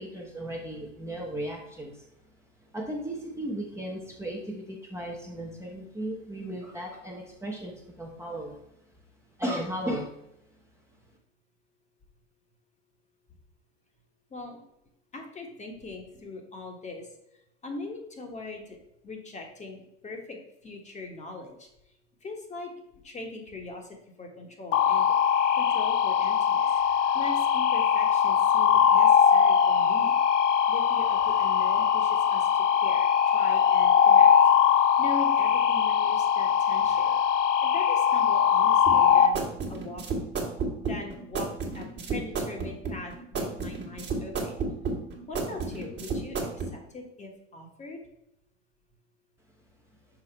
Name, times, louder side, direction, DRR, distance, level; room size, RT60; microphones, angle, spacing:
voice 1, 0.0-2.0 2.7-8.6 9.4-10.1, right 1 dB, 5° right, -2 dB, 1.1 m, -35 dB
voice 2, 15.1-17.1 17.6-18.8 19.0-21.7 22.2-22.7 23.0-23.9 24.2-26.7 27.1-30.2 30.7-34.3 34.7-37.2 37.6-39.4 39.7-40.0 40.8-44.6 45.2-48.0, left 2 dB, 20° left, 2 dB, 1.4 m, -41 dB
sound 1, 24.7-39.3, left 8 dB, 75° left, 0.7 m, -21 dB
sound 2, 38.9-46.7, right 4 dB, 30° right, 1.7 m, -32 dB
6.1 x 4.7 x 4.5 m, 0.82 s
hypercardioid pair, 100°, 37 cm